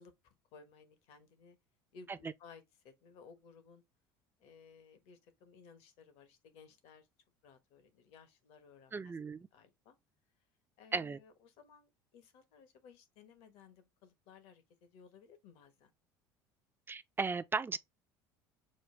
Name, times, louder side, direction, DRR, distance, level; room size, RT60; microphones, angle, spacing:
voice 1, 0.0-1.6 1.9-3.8 4.4-7.1 7.4-9.2 9.5-9.9 10.8-15.9, left 5 dB, 65° left, 1.2 m, -59 dB
voice 2, 8.9-9.5 10.9-11.2 16.9-17.8, right 4 dB, 20° right, 0.5 m, -36 dB
6.3 x 2.3 x 3.4 m
hypercardioid pair, 75°, 11 cm